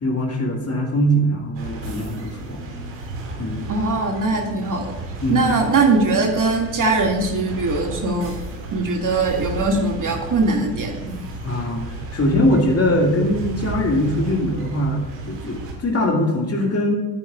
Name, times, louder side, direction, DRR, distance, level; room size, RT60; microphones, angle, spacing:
voice 1, 0.0-2.6 3.4-3.7 5.2-5.5 11.4-16.9, equal, 30° left, 0 dB, 2.2 m, -21 dB
sound 1, 1.5-15.7, right 2 dB, 85° right, 2.4 m, -33 dB
voice 2, 3.7-4.9 5.3-8.3 8.7-11.2, right 3 dB, 40° right, 0 dB, 2.2 m, -21 dB
13.0 x 9.1 x 2.4 m, 1.1 s
hypercardioid pair, 65°, 49 cm